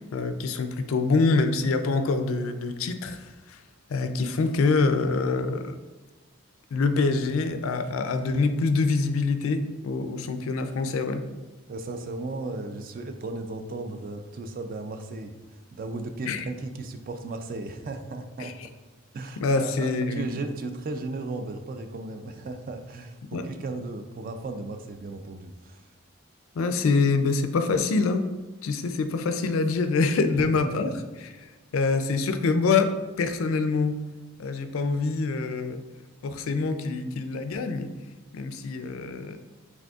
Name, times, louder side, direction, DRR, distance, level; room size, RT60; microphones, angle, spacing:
voice 1, 0.1-3.6 3.9-5.8 6.7-11.2 16.2-16.5 18.4-18.5 19.4-20.4 23.3-23.5 26.5-28.3 28.6-30.9 31.2-32.9 33.2-34.0 34.4-35.8 36.2-37.9 38.3-39.4, left 4 dB, 75° left, 8 dB, 0.4 m, -25 dB
voice 2, 11.7-15.3 15.7-18.8 19.1-25.9 30.4-31.0, right 2 dB, 40° right, 7 dB, 0.3 m, -35 dB
4.9 x 3.5 x 2.3 m, 1.2 s
head